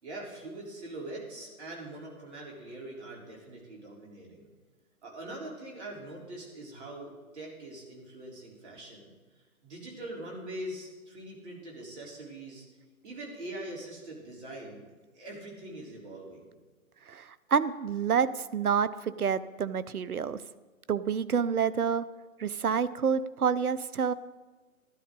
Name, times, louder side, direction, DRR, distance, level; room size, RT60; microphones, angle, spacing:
voice 1, 0.0-4.5 5.0-9.1 9.6-12.7 13.0-14.8 15.1-16.5, right 1 dB, 50° right, -2 dB, 3.8 m, -43 dB
voice 2, 17.1-20.4 20.9-22.1 22.4-24.1, right 6 dB, 85° right, 16 dB, 0.7 m, -28 dB
13.5 x 11.5 x 3.8 m, 1.3 s
figure-of-eight pair, 135°, 43 cm